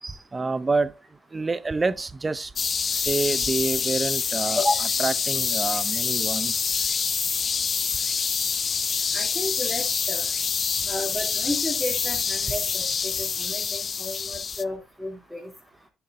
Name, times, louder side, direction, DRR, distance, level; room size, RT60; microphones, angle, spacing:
voice 1, 0.0-0.9 1.3-2.5 2.9-4.6 5.0-6.7 8.8-8.9, right 3 dB, 25° right, 0.6 m, -27 dB
sound 1, 2.6-14.6, left 6 dB, 45° left, 0.4 m, -26 dB
voice 2, 9.1-10.2 10.8-15.5, left 2 dB, ahead, 3.0 m, -32 dB
11.0 x 6.8 x 2.6 m
cardioid pair, 90°, 0 cm